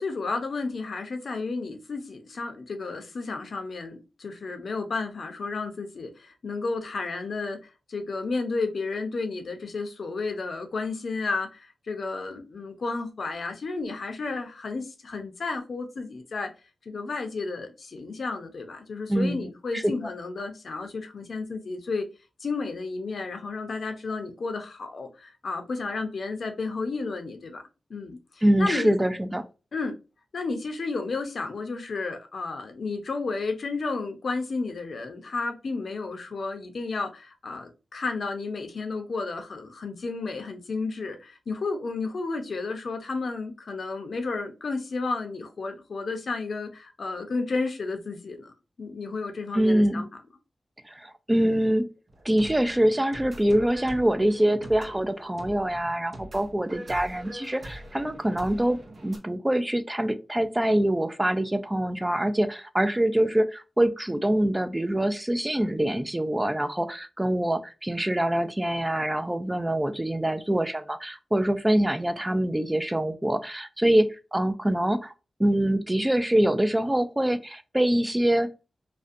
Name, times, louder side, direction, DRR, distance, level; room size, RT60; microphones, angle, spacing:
voice 1, 0.0-16.5 16.9-22.1 22.4-27.6 27.9-28.9 29.7-29.9 30.3-48.5 48.8-50.1, left 3 dB, 65° left, 0.5 m, -32 dB
voice 2, 19.1-19.8 28.4-29.5 49.5-50.1 50.9-51.9 52.2-75.1 75.4-78.7, right 1 dB, 15° right, 0.3 m, -25 dB
sound 1, 52.1-59.2, right 1 dB, 55° right, 0.7 m, -43 dB
2.4 x 2.1 x 2.5 m
cardioid pair, 60°, 0 cm